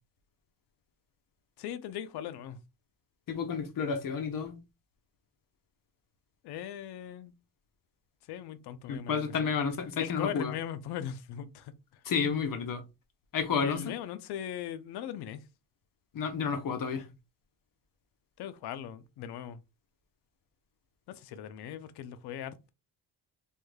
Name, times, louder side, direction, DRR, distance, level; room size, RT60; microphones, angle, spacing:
voice 1, 1.6-2.6 6.4-7.3 8.3-9.5 10.0-11.7 13.6-15.4 18.4-19.6 21.1-22.7, left 10 dB, 80° left, 0.6 m, -39 dB
voice 2, 3.3-4.6 8.9-10.5 12.1-12.8 13.3-13.9 16.1-17.0, left 6 dB, 55° left, 0.9 m, -31 dB
3.2 x 2.3 x 3.2 m
cardioid pair, 95°, 39 cm